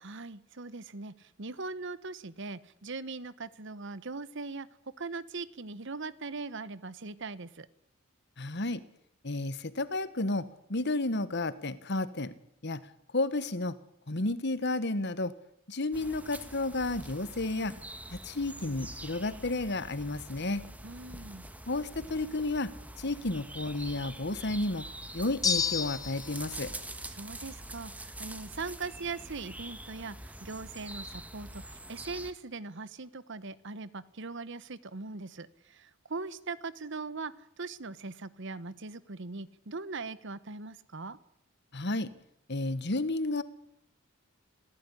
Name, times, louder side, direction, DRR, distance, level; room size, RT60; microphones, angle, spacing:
voice 1, 0.0-4.7 5.0-7.7 20.8-21.5 27.1-41.2, right 3 dB, 60° right, 17 dB, 1.1 m, -40 dB
voice 2, 8.4-8.8 9.2-12.3 12.6-12.8 13.1-13.8 14.1-15.3 15.7-17.7 18.1-20.6 21.7-22.7 23.0-24.8 25.1-26.7 41.7-42.1 42.5-43.4, left 2 dB, 55° left, 14 dB, 1.5 m, -32 dB
sound 1, 15.9-32.3, right 1 dB, 5° right, 1.8 m, -45 dB
sound 2, 25.4-26.4, left 6 dB, 20° left, 1.0 m, -29 dB
26.5 x 16.5 x 10.0 m, 0.76 s
head